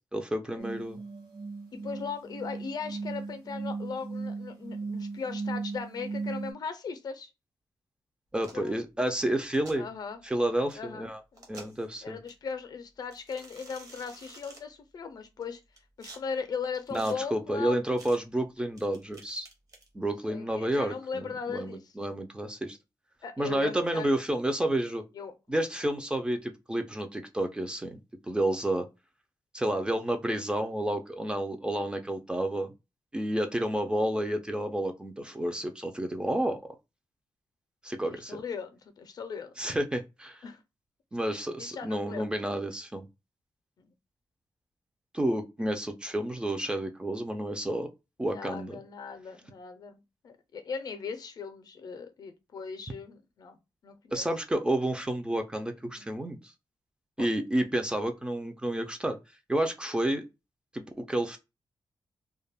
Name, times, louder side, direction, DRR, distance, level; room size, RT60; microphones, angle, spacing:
voice 1, 0.1-1.0 8.3-9.9 10.2-11.2 11.5-12.2 16.9-19.5 19.9-22.8 23.4-25.0 25.5-28.0 28.3-28.9 29.5-32.7 33.1-36.6 37.8-38.4 39.6-40.4 41.1-43.1 45.1-47.9 48.2-48.8 54.1-56.5 57.2-59.2 59.5-60.2 60.7-60.8 61.1-61.4, right 1 dB, 10° right, 0.3 m, -30 dB
sound 1, 0.6-6.5, right 4 dB, 65° right, 1.2 m, -37 dB
voice 2, 1.7-7.3 8.5-8.8 9.8-10.2 10.7-11.6 12.0-15.6 16.0-17.8 20.0-21.8 23.2-24.1 25.1-25.3 38.1-39.6 40.4-40.6 41.6-42.4 43.8-43.9 48.3-54.3 55.9-56.1 57.2-57.3, left 5 dB, 55° left, 0.4 m, -38 dB
sound 2, 8.4-8.7 9.4-9.8 10.7-10.8 11.3-11.9 12.3-12.4 13.1-14.6 15.4-16.2 16.7-17.1 18.0-18.2 18.8-19.9, right 3 dB, 45° right, 0.8 m, -50 dB
2.2 x 2.0 x 3.2 m
wide cardioid pair, 145°, 8 cm